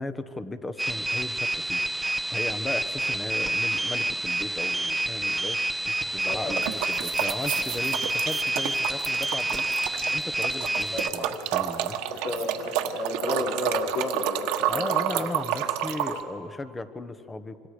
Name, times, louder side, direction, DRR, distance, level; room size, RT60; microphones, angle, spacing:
voice 1, 0.0-5.6 6.0-9.7 10.1-12.2 14.7-17.7, left 2 dB, 15° left, 11 dB, 1.3 m, -36 dB
sound 1, 0.8-11.1, right 1 dB, 5° right, 1.1 m, -28 dB
voice 2, 6.2-6.7 10.9-11.3 12.1-15.3 15.8-15.9, left 2 dB, 75° left, -1 dB, 4.9 m, -32 dB
sound 2, 6.2-10.2 10.4-16.2, right 12 dB, 70° right, 1.4 m, -30 dB
26.5 x 25.5 x 5.1 m, 2.6 s
supercardioid pair, 100°, 0 cm